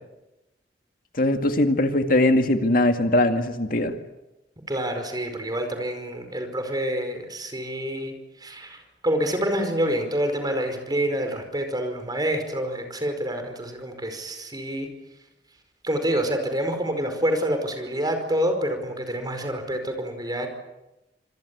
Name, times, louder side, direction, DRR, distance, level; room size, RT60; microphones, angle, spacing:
voice 1, 1.1-3.9, left 1 dB, 55° left, 6 dB, 2.1 m, -21 dB
voice 2, 4.7-8.1 8.4-8.8 9.0-14.9 15.8-20.5, equal, 25° right, 6 dB, 4.9 m, -27 dB
26.5 x 22.5 x 8.5 m, 0.96 s
head